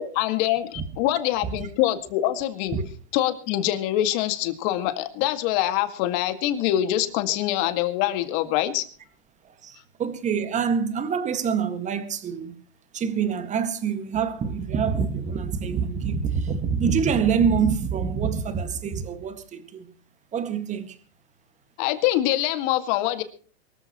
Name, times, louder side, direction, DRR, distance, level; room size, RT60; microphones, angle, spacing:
voice 1, 0.0-2.8 3.1-8.8 21.8-23.2, left 13 dB, 45° left, 2.0 m, -24 dB
voice 2, 9.4-12.6 12.9-19.9 20.3-21.0, right 6 dB, 20° right, 1.8 m, -26 dB
23.5 x 14.0 x 3.1 m
hypercardioid pair, 130°, 32 cm